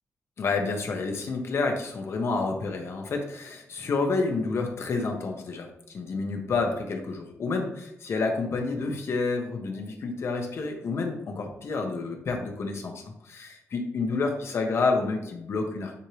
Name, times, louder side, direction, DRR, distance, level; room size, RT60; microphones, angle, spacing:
voice 1, 0.4-15.9, left 3 dB, 55° left, 3 dB, 1.1 m, -29 dB
9.7 x 3.3 x 3.1 m, 0.82 s
wide cardioid pair, 155°, 5 cm